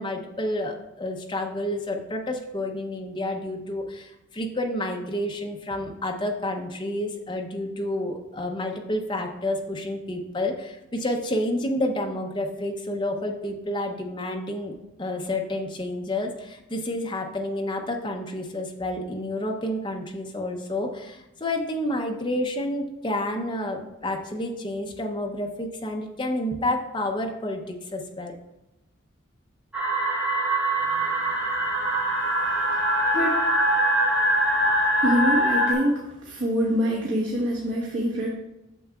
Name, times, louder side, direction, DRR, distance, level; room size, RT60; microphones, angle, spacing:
voice 1, 0.0-14.7 15.0-28.3, left 1 dB, 20° left, 2 dB, 0.7 m, -29 dB
sound 1, 29.7-35.7, right 1 dB, 5° right, 1.3 m, -23 dB
voice 2, 35.0-35.9 36.2-38.3, equal, 60° right, -5 dB, 1.1 m, -24 dB
9.1 x 6.5 x 2.4 m, 0.95 s
head